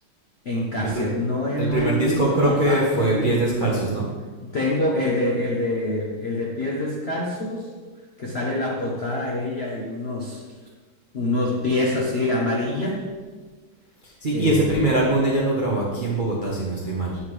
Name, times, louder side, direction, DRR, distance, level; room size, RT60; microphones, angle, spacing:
voice 1, 0.4-3.8 4.4-7.7 8.2-10.4 11.1-13.1 14.3-14.8, left 1 dB, 90° left, -2 dB, 0.5 m, -26 dB
voice 2, 1.6-4.1 14.0-17.2, right 1 dB, 70° right, -4 dB, 0.4 m, -22 dB
7.7 x 6.2 x 3.1 m, 1.4 s
omnidirectional pair, 2.3 m